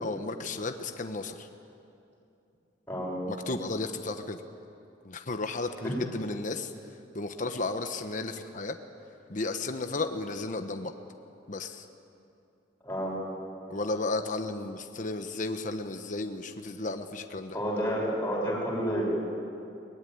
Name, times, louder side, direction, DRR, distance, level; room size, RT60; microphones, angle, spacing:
voice 1, 0.0-1.5 3.5-4.4 5.0-6.7 7.1-8.8 9.3-10.9 11.5-11.9 13.7-17.6, left 3 dB, 45° left, 7 dB, 1.1 m, -33 dB
voice 2, 2.9-3.2 5.8-5.9 12.8-13.2 17.5-19.1, equal, 10° left, -5 dB, 6.3 m, -30 dB
22.5 x 19.5 x 9.5 m, 2.7 s
head